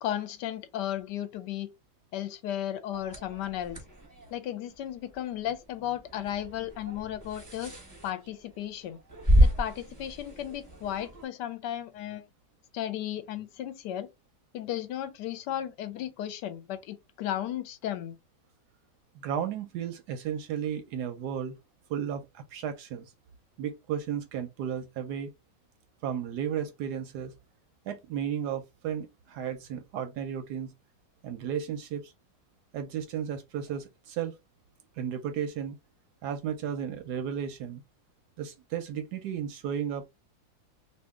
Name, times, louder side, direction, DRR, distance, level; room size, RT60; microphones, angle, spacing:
voice 1, 0.0-1.7 2.1-3.8 4.3-7.7 8.0-9.0 9.4-12.3 12.7-14.1 14.5-18.2, left 11 dB, 75° left, 1.1 m, -34 dB
sound 1, 2.9-11.2, equal, 15° right, 0.7 m, -30 dB
voice 2, 19.1-21.5 21.9-23.1 23.6-25.3 26.0-27.3 27.9-30.7 31.2-32.1 32.7-34.3 35.0-35.8 36.2-37.8 38.4-40.1, right 8 dB, 70° right, 1.0 m, -34 dB
2.9 x 2.7 x 3.4 m
omnidirectional pair, 2.0 m